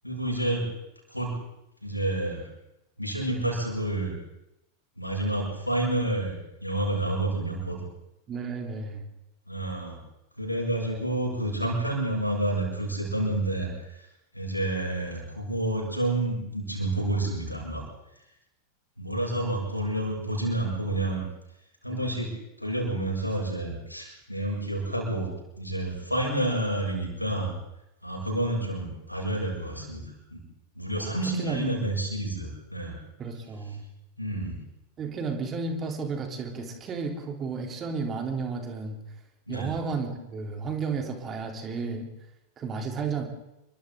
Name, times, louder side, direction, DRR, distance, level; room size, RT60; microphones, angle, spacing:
voice 1, 0.0-0.6 1.1-1.4 1.8-2.4 3.0-4.1 5.0-6.3 6.6-7.8 9.5-10.0 10.4-14.0 14.3-17.8 19.0-21.2 21.8-22.3 22.6-25.3 25.6-27.5 28.0-30.4 30.8-33.0 34.2-34.6 39.5-39.7, right 1 dB, 90° left, -1 dB, 7.3 m, -29 dB
voice 2, 8.3-9.0 21.9-22.0 28.2-28.5 31.0-31.8 33.2-33.8 35.0-39.0 39.5-42.1 42.6-43.2, right 4 dB, 25° right, 3 dB, 3.5 m, -33 dB
29.5 x 23.5 x 3.9 m, 0.89 s
figure-of-eight pair, 90°, 0 cm